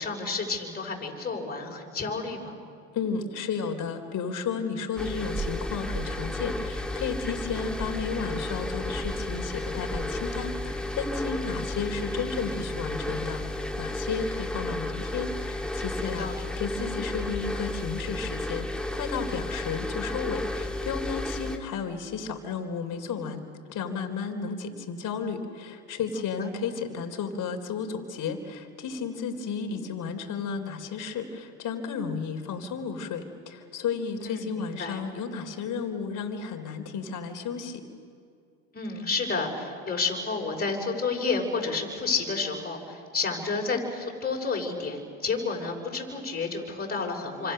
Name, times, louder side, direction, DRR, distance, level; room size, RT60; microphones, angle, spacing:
voice 1, 0.0-2.6 16.0-16.5 26.4-26.5 34.2-35.0 38.7-47.5, left 4 dB, 20° left, 0 dB, 5.9 m, -30 dB
voice 2, 2.9-16.3 16.6-18.7 18.9-23.4 23.7-37.8, left 6 dB, 45° left, 5 dB, 3.7 m, -33 dB
sound 1, 5.0-21.6, left 1 dB, ahead, 2.1 m, -32 dB
28.0 x 26.0 x 6.8 m, 2.4 s
hypercardioid pair, 90°, 44 cm